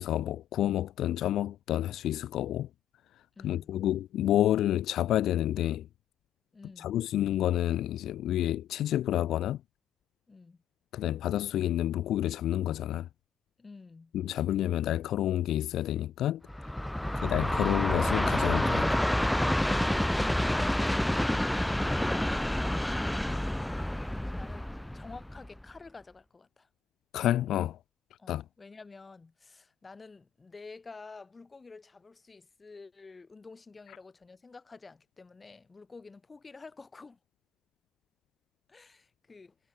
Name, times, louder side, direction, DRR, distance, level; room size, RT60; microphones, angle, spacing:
voice 1, 0.0-2.7 3.4-5.9 6.8-9.6 10.9-13.1 14.1-16.4 17.2-18.9 27.1-27.8 28.3-28.4, left 12 dB, 75° left, 0.6 m, -29 dB
voice 2, 3.4-3.7 6.5-7.0 10.3-10.6 13.6-14.1 21.1-22.9 24.4-26.7 28.2-37.2 38.7-39.6, left 4 dB, 35° left, 3.0 m, -50 dB
Train, 16.5-25.7, left 1 dB, 10° left, 0.8 m, -28 dB
supercardioid pair, 50°, 0 cm